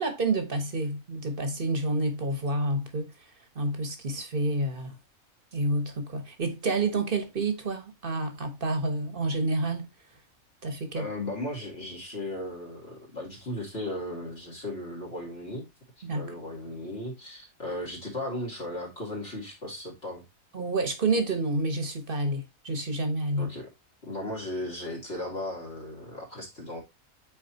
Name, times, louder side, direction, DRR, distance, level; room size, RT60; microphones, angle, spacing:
voice 1, 0.0-3.1 3.5-4.9 5.5-9.9 10.6-11.0 16.0-16.4 20.5-23.5, right 2 dB, 40° right, 1.4 m, -29 dB
voice 2, 10.9-15.7 16.1-20.2 23.4-23.7 24.0-26.8, left 1 dB, 45° left, 2.6 m, -36 dB
8.5 x 4.5 x 2.8 m
omnidirectional pair, 1.5 m